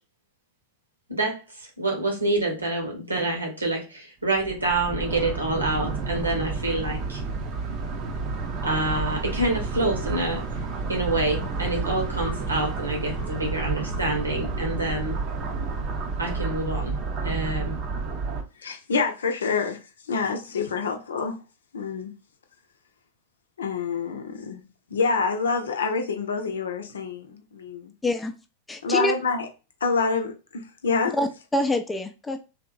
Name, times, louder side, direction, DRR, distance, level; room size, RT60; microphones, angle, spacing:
voice 1, 1.1-7.2 8.6-10.5 10.9-15.2 16.2-17.0 17.2-17.8, right 2 dB, 80° right, 1.2 m, -27 dB
sound 1, 4.4-18.4, right 4 dB, 40° right, 0.7 m, -30 dB
voice 2, 18.6-19.8 20.1-21.4 21.7-22.2 23.6-27.9 28.8-29.5 29.8-31.2, left 4 dB, 65° left, 0.6 m, -27 dB
voice 3, 28.0-28.3 28.7-29.1 31.1-32.4, left 1 dB, 10° left, 0.5 m, -26 dB
3.4 x 2.8 x 2.5 m
figure-of-eight pair, 90°, 0 cm